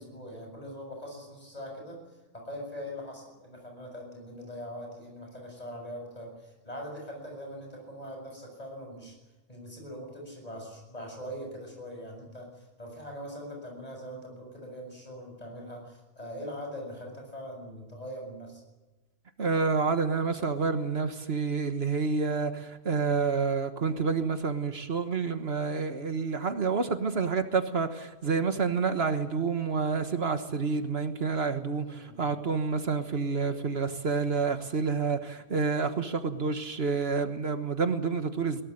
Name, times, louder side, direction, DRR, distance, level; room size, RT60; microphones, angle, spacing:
voice 1, 0.0-2.0 2.3-9.1 9.5-18.6 31.8-32.3, equal, 35° left, 1 dB, 7.3 m, -42 dB
voice 2, 19.4-38.6, right 5 dB, 65° right, 8 dB, 1.6 m, -28 dB
21.5 x 17.5 x 9.7 m, 1.2 s
omnidirectional pair, 1.1 m